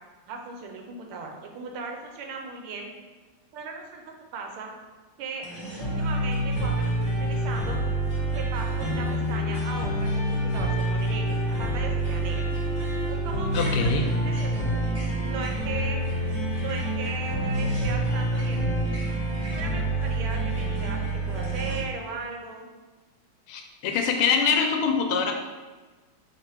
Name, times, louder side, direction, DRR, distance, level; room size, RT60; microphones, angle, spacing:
voice 1, 0.3-2.9 3.5-4.7 5.2-5.5 5.8-7.8 8.3-12.5 13.1-14.8 15.2-16.0 16.6-18.6 19.5-22.7, right 4 dB, 80° right, 2 dB, 1.5 m, -37 dB
sound 1, 5.4-21.8, right 1 dB, 20° left, 1.4 m, -27 dB
voice 2, 13.5-14.1 23.5-25.3, left 6 dB, 80° left, 4 dB, 1.4 m, -24 dB
3.6 x 3.3 x 4.5 m, 1.3 s
omnidirectional pair, 2.4 m